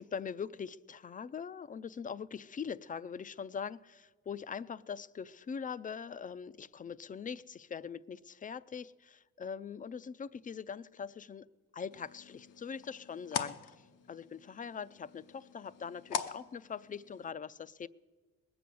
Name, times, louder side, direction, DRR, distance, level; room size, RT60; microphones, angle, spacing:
voice 1, 0.0-11.5 11.7-17.9, left 6 dB, 30° left, 17 dB, 0.4 m, -42 dB
sound 1, 11.9-17.3, left 8 dB, 80° left, 0.8 m, -43 dB
20.0 x 7.8 x 6.9 m, 1.3 s
cardioid pair, 90°, 30 cm